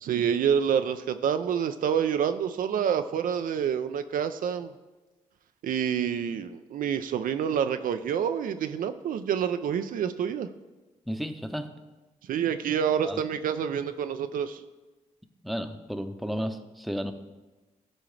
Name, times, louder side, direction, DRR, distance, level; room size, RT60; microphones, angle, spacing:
voice 1, 0.0-4.7 5.6-10.5 12.3-14.6, right 8 dB, 70° right, 9 dB, 0.4 m, -27 dB
voice 2, 11.1-11.7 13.0-13.2 15.4-17.1, equal, ahead, 7 dB, 0.8 m, -33 dB
13.0 x 4.6 x 3.2 m, 1.2 s
supercardioid pair, 45°, 15 cm